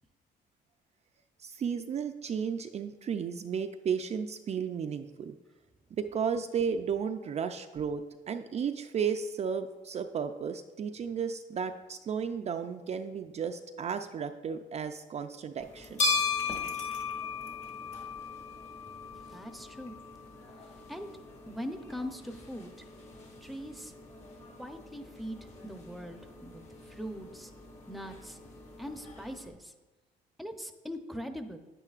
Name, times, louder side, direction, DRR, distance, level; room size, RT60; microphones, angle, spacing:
voice 1, 1.4-5.3 5.9-16.0, right 6 dB, 40° right, 6 dB, 0.4 m, -34 dB
sound 1, 15.6-29.5, left 4 dB, 45° left, 1.9 m, -38 dB
voice 2, 19.3-19.9 20.9-21.1 21.5-22.7 23.4-23.9 24.6-26.6 26.9-27.5 27.9-28.4 28.8-29.7 30.4-31.6, equal, ahead, 7 dB, 0.7 m, -41 dB
9.8 x 9.1 x 2.4 m, 1.2 s
cardioid pair, 95°, 17 cm